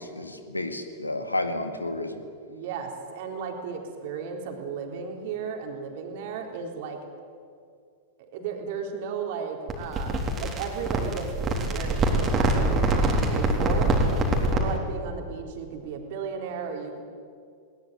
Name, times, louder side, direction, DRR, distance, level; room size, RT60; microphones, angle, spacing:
voice 1, 0.0-2.2, left 2 dB, 90° left, 8 dB, 2.0 m, -31 dB
voice 2, 2.5-7.1 8.3-14.0 14.5-17.0, right 6 dB, 55° right, 2 dB, 3.9 m, -35 dB
sound 1, 9.7-14.8, right 1 dB, 25° right, 3.8 m, -24 dB
20.0 x 19.0 x 9.6 m, 2.3 s
figure-of-eight pair, 95°, 0 cm